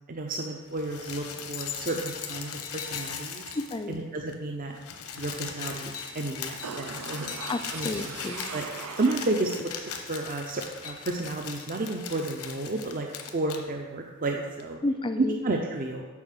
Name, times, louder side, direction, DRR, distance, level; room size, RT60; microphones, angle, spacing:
voice 1, 0.1-3.4 3.9-4.8 5.2-7.3 7.7-8.1 8.5-8.6 9.0-13.1 13.3-14.8 15.2-16.1, right 2 dB, 40° right, 2 dB, 0.6 m, -31 dB
sound 1, 0.7-4.0 4.3-4.4 4.6-13.6 14.6-14.7, left 6 dB, 80° left, 0.9 m, -39 dB
voice 2, 3.5-4.0 7.5-8.5 14.8-15.4, left 2 dB, 20° left, 8 dB, 0.4 m, -31 dB
sound 2, 6.6-9.6 9.9-10.0, right 6 dB, 90° right, 0.6 m, -40 dB
7.0 x 5.3 x 6.6 m, 1.3 s
head